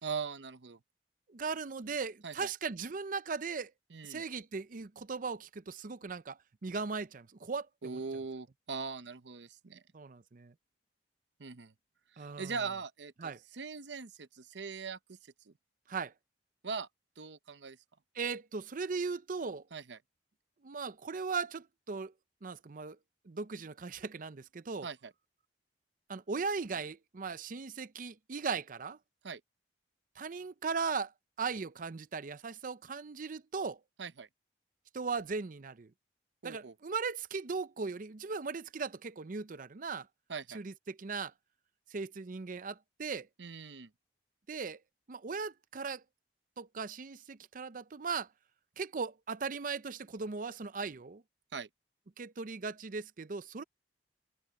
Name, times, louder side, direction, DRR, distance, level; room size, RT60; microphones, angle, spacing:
voice 1, 0.0-0.8 2.2-2.5 3.9-4.2 7.8-9.8 11.4-11.7 12.1-15.5 16.6-16.9 17.2-17.8 19.7-20.0 24.8-25.1 29.2-29.4 34.0-34.3 36.4-36.7 40.3-40.6 43.4-43.9 51.5-51.7, right 5 dB, 90° right, 0.8 m, -41 dB
voice 2, 1.3-3.7 4.0-8.0 9.9-10.5 12.2-12.5 13.2-13.4 15.9-16.1 18.2-19.6 20.6-22.1 22.4-23.0 23.3-24.9 26.1-29.0 30.2-31.1 31.4-33.8 34.9-35.9 36.4-40.1 40.5-41.3 41.9-43.3 44.5-44.8 45.1-46.0 46.6-48.3 48.8-51.2 52.2-53.6, right 5 dB, 50° right, 0.6 m, -38 dB
head